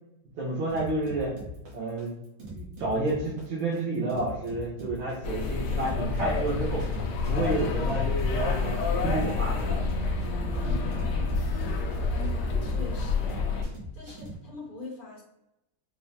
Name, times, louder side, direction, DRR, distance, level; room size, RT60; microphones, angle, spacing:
voice 1, 0.4-1.3 1.7-2.2 2.5-6.8 7.2-9.8 10.8-11.0, right 2 dB, 70° right, -8 dB, 1.8 m, -30 dB
sound 1, 0.7-14.3, left 1 dB, 85° right, 2.1 m, -41 dB
sound 2, 5.2-13.6, left 4 dB, 70° left, 1.0 m, -28 dB
sound 3, 5.9-11.8, equal, 55° right, 0.9 m, -41 dB
voice 2, 12.1-13.6 13.9-15.2, left 3 dB, 45° left, -2 dB, 0.6 m, -42 dB
5.3 x 2.1 x 2.8 m, 0.90 s
omnidirectional pair, 2.2 m